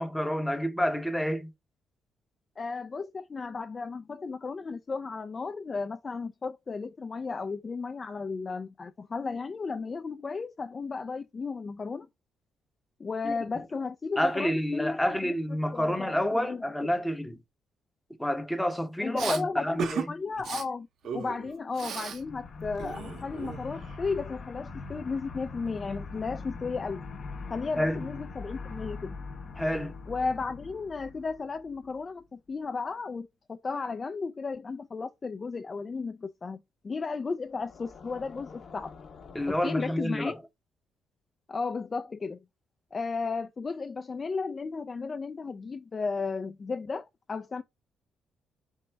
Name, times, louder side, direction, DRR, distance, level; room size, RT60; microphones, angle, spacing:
voice 1, 0.0-1.5 13.2-13.3 14.2-17.4 18.2-20.1 27.8-28.0 29.6-29.9 39.3-40.3, equal, 5° left, 0.7 m, -29 dB
voice 2, 2.6-12.1 13.0-16.9 19.0-20.9 21.1-27.0 27.5-29.2 30.1-36.6 36.8-38.9 39.5-40.4 41.5-42.4 42.9-47.6, left 4 dB, 35° left, 0.3 m, -34 dB
Respiratory sounds, 19.2-19.4 19.8-20.1 20.4-20.6 21.0-22.2 22.5-23.9, right 7 dB, 65° right, 0.7 m, -36 dB
Tesla Monster - Low Growl, 22.1-32.0 37.6-39.6, left 4 dB, 50° left, 0.7 m, -42 dB
4.4 x 2.0 x 4.4 m
cardioid pair, 90°, 0 cm